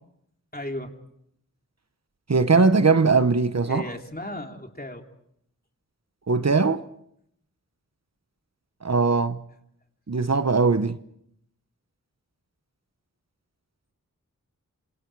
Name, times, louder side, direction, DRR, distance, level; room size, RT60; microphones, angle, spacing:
voice 1, 0.5-0.9 3.7-5.0, left 1 dB, 30° left, 3.3 m, -35 dB
voice 2, 2.3-3.8 6.3-6.8 8.8-9.4 10.1-11.0, right 4 dB, 55° right, 1.1 m, -20 dB
27.0 x 26.5 x 4.8 m
wide cardioid pair, 60°, 32 cm